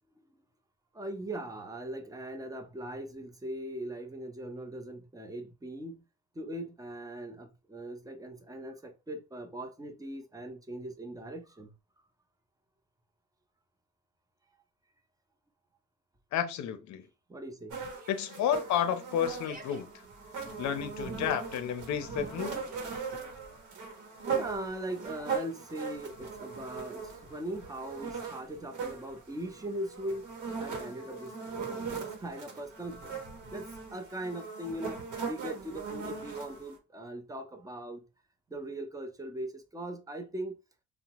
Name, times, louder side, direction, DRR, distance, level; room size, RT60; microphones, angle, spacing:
voice 1, 0.9-6.0 6.3-11.7 17.3-17.8 24.3-31.3 31.6-33.2 33.5-38.0 38.5-40.6, right 1 dB, 10° right, 0.6 m, -40 dB
voice 2, 16.3-17.1 18.1-19.9 20.6-22.7, left 9 dB, 70° left, 0.5 m, -31 dB
sound 1, 17.7-36.8, right 5 dB, 85° right, 0.9 m, -39 dB
Yell, 17.9-18.4 19.2-19.8 20.6-21.1 22.3-23.2 25.0-25.6, right 2 dB, 30° right, 0.9 m, -53 dB
2.8 x 2.1 x 2.9 m
cardioid pair, 90°, 30 cm